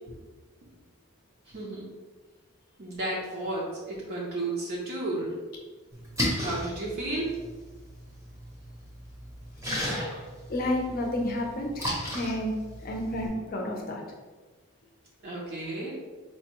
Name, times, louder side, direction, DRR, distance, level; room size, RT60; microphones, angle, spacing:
voice 1, 1.5-1.9 2.8-5.3 6.4-7.4 15.2-15.9, right 2 dB, 50° right, -5 dB, 0.6 m, -33 dB
Splash splatter, 5.9-13.3, equal, 15° right, 0.7 m, -35 dB
voice 2, 9.8-10.1 10.5-11.9 12.1-12.6 12.8-14.0, left 1 dB, 45° left, 1 dB, 0.6 m, -31 dB
4.4 x 2.2 x 2.9 m, 1.3 s
head